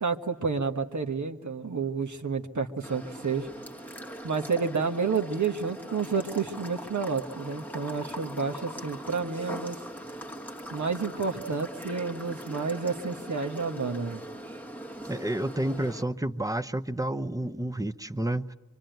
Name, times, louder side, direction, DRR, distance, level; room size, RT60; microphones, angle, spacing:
voice 1, 0.0-3.5 4.2-9.8 10.7-14.2, right 5 dB, 80° right, 1.5 m, -30 dB
sound 1, 2.8-16.0, equal, 5° left, 1.3 m, -41 dB
voice 2, 15.0-18.5, right 1 dB, 10° right, 0.8 m, -30 dB
25.0 x 24.5 x 9.3 m
wide cardioid pair, 65°, 29 cm